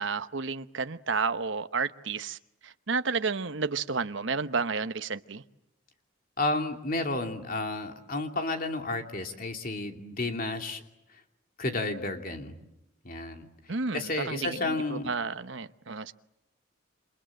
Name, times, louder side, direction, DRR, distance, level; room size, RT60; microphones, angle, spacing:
voice 1, 0.0-2.4 2.6-5.4 13.7-16.1, right 4 dB, 65° right, 11 dB, 1.0 m, -31 dB
voice 2, 6.4-10.8 11.6-12.6 13.0-13.5 13.9-15.1, left 2 dB, 45° left, 5 dB, 2.8 m, -31 dB
28.5 x 27.0 x 7.7 m, 0.89 s
head